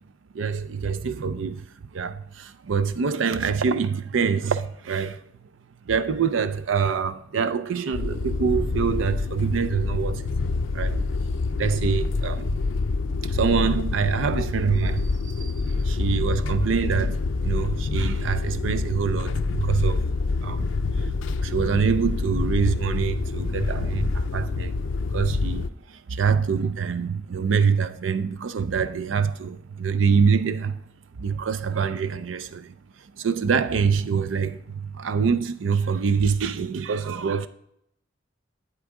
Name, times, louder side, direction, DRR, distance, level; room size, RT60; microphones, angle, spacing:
voice 1, 0.3-1.6 1.9-5.2 5.9-10.2 10.7-11.0 11.6-12.6 13.3-15.5 15.8-20.0 20.4-20.7 21.4-24.8 25.1-25.7 26.1-30.8 31.2-32.7 33.2-37.5, right 6 dB, 90° right, 0.5 m, -25 dB
sound 1, 7.9-25.7, left 3 dB, 80° left, 0.5 m, -26 dB
8.9 x 8.2 x 3.6 m
head